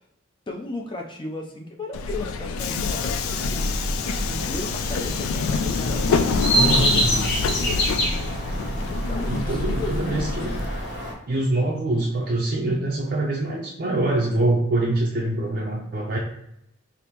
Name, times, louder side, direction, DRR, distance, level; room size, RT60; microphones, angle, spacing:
voice 1, 0.5-3.8 4.2-7.9 9.1-10.1, left 2 dB, 25° left, 1 dB, 0.4 m, -35 dB
Subway metro underground, 1.9-10.7, left 5 dB, 90° left, 0.3 m, -27 dB
sound 1, 2.8-11.1, equal, 55° left, 0.8 m, -27 dB
voice 2, 6.6-7.1 9.3-10.5 11.3-16.2, right 2 dB, 45° right, -3 dB, 0.5 m, -24 dB
5.1 x 2.0 x 2.9 m, 0.77 s
head